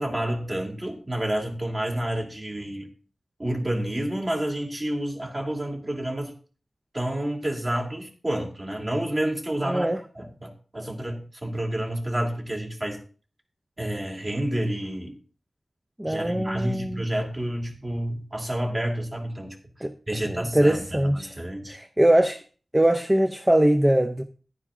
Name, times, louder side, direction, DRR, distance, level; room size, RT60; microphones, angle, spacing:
voice 1, 0.0-2.9 3.4-6.3 6.9-13.0 13.8-15.2 16.1-19.6 20.1-21.8, right 1 dB, 35° right, 2.8 m, -29 dB
voice 2, 9.7-10.0 16.0-17.0 19.8-19.9 20.2-21.4 21.7-22.4 22.7-24.2, right 1 dB, 15° right, 0.6 m, -22 dB
11.0 x 9.7 x 3.8 m
wide cardioid pair, 70°, 0 cm